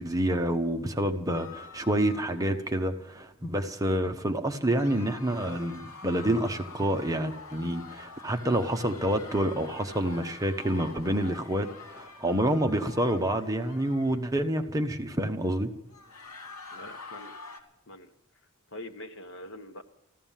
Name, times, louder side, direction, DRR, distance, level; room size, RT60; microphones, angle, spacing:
voice 1, 0.0-15.7, right 1 dB, 15° right, 5 dB, 0.9 m, -28 dB
sound 1, 1.3-2.9 4.6-14.2 15.9-17.6, left 4 dB, 85° left, 2.4 m, -46 dB
voice 2, 16.7-17.4 17.9-18.1 18.7-19.8, left 1 dB, 55° left, 7 dB, 1.3 m, -43 dB
15.0 x 13.0 x 7.4 m, 0.92 s
head